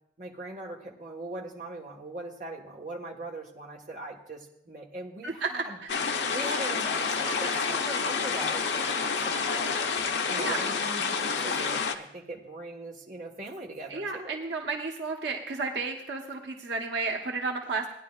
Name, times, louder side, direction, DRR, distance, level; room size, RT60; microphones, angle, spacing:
voice 1, 0.2-5.8 6.3-9.8 10.3-14.4, right 2 dB, 45° right, -1 dB, 1.4 m, -40 dB
voice 2, 5.2-5.9 9.5-9.8 10.3-10.6 13.9-17.8, right 3 dB, 85° right, 1 dB, 1.1 m, -32 dB
sound 1, 5.9-12.0, left 5 dB, 80° left, 0.7 m, -29 dB
17.5 x 10.0 x 2.4 m, 0.78 s
head